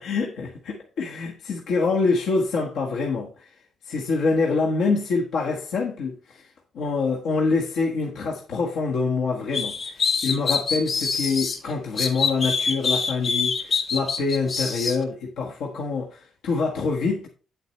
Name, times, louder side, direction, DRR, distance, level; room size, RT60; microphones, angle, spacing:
voice 1, 0.0-3.5 3.8-6.5 6.7-17.3, left 4 dB, 80° left, 1.4 m, -25 dB
sound 1, 9.5-11.6 12.0-15.0, left 5 dB, 50° left, 3.0 m, -25 dB
9.1 x 7.8 x 3.1 m
cardioid pair, 90°, 0 cm